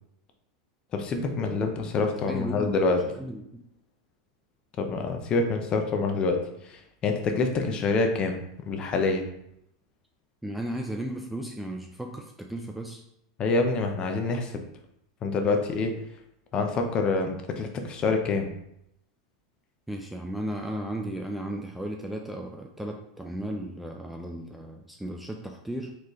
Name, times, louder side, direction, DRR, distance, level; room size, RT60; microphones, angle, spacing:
voice 1, 0.9-3.0 4.8-6.4 6.6-9.2 13.4-14.6 15.2-15.9 16.5-18.5, left 3 dB, 30° left, 4 dB, 0.6 m, -26 dB
voice 2, 2.3-3.6 10.4-13.0 19.9-26.0, right 1 dB, 5° right, 2 dB, 0.3 m, -35 dB
4.4 x 3.2 x 3.0 m, 0.77 s
supercardioid pair, 130°, 3 cm